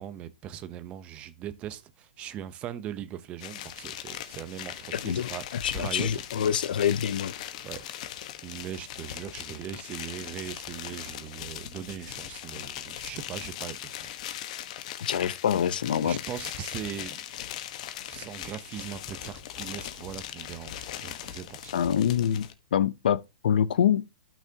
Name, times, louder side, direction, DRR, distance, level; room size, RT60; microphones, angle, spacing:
voice 1, 0.0-6.1 7.6-7.9 8.4-14.2 16.0-17.2 18.1-21.7, right 10 dB, 25° right, 0.8 m, -40 dB
sound 1, 3.4-22.5, left 11 dB, 50° left, 1.2 m, -40 dB
voice 2, 5.0-7.3 15.0-16.2 21.7-24.1, left 9 dB, 75° left, 0.7 m, -26 dB
12.0 x 6.2 x 2.9 m
hypercardioid pair, 150°, 5 cm